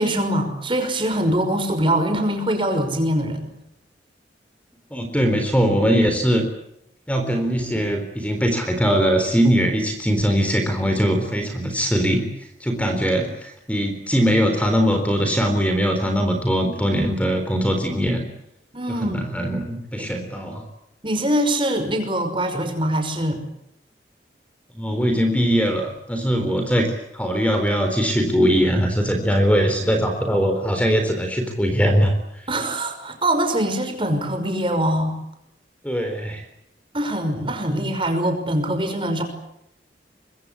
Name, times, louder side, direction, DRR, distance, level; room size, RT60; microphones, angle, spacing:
voice 1, 0.0-3.5 18.7-19.3 20.0-20.1 21.0-23.4 32.5-35.1 36.9-39.2, right 1 dB, 30° right, 6 dB, 5.7 m, -23 dB
voice 2, 4.9-6.4 7.1-12.3 12.6-18.3 18.9-20.6 24.7-32.1 35.8-36.4, equal, 10° left, 6 dB, 4.0 m, -21 dB
25.0 x 23.5 x 8.5 m, 0.78 s
head